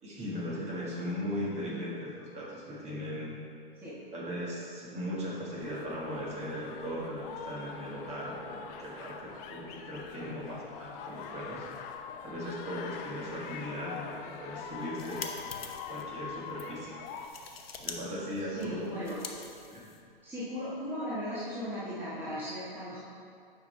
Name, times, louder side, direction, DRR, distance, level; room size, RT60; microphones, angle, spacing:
voice 1, 0.0-3.3 4.1-11.7 12.2-15.2 15.9-16.9 17.8-18.9 19.7-19.8, equal, 20° right, -5 dB, 1.9 m, -38 dB
sound 1, 5.6-17.3, left 6 dB, 30° left, 0.5 m, -44 dB
sound 2, 14.7-16.0 16.5-16.7 17.1-18.0 18.2-20.2, left 5 dB, 80° left, 0.8 m, -44 dB
voice 2, 18.5-19.3 20.2-23.0, equal, 5° right, -10 dB, 1.5 m, -37 dB
8.9 x 5.7 x 3.4 m, 2.4 s
figure-of-eight pair, 110°, 29 cm